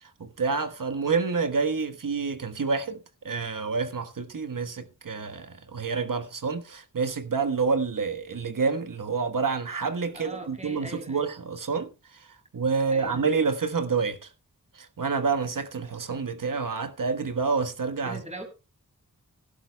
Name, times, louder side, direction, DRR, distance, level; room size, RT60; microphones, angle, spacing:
voice 1, 0.0-3.0 3.2-12.3 12.5-14.3 14.7-18.2, right 5 dB, 65° right, 1.4 m, -28 dB
voice 2, 10.1-11.3 12.9-13.3 18.0-18.4, right 1 dB, 20° right, 4.1 m, -41 dB
17.0 x 11.5 x 2.2 m
wide cardioid pair, 70°, 35 cm